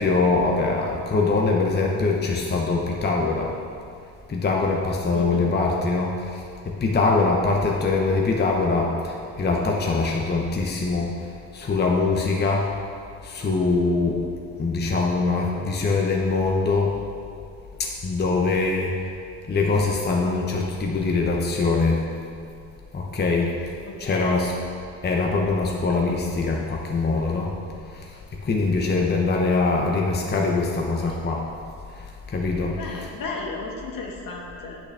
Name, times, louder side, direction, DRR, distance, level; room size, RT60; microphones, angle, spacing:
voice 1, 0.0-3.5 4.3-12.7 13.2-14.2 14.6-17.0 17.8-19.1 19.5-22.0 22.9-23.5 24.0-24.5 25.0-27.5 27.8-31.5 31.9-33.1, left 3 dB, 25° left, -1 dB, 1.0 m, -23 dB
voice 2, 5.1-5.5 23.8-24.4 31.0-31.1 32.8-34.8, left 3 dB, 55° left, -1 dB, 1.7 m, -34 dB
8.8 x 8.1 x 3.5 m, 2.5 s
supercardioid pair, 80°, 38 cm